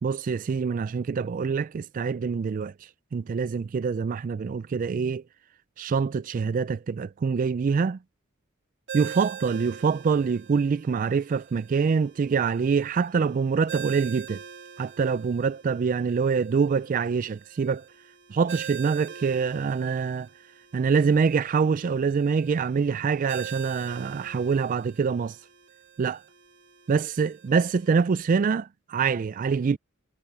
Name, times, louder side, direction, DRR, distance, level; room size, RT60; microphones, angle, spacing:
voice 1, 0.0-5.2 5.8-8.0 8.9-14.4 14.8-17.9 18.3-20.3 20.7-25.4 26.0-26.2 26.9-29.8, right 5 dB, 40° right, 0.3 m, -25 dB
Ringtone, 8.9-28.0, right 8 dB, 60° right, 2.4 m, -44 dB
head